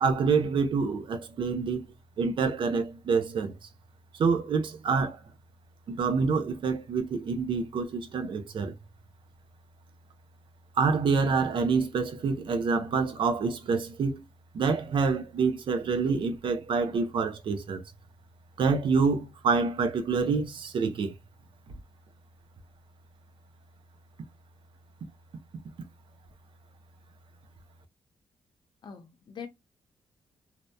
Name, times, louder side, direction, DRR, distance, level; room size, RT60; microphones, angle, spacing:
voice 1, 0.0-1.9 2.2-3.6 4.1-5.2 5.9-8.7 10.8-14.2 14.5-17.8 18.6-21.1, right 5 dB, 60° right, 0.5 m, -27 dB
voice 2, 28.8-29.5, left 7 dB, 50° left, 0.6 m, -42 dB
2.7 x 2.1 x 2.2 m
cardioid pair, 105°, 10 cm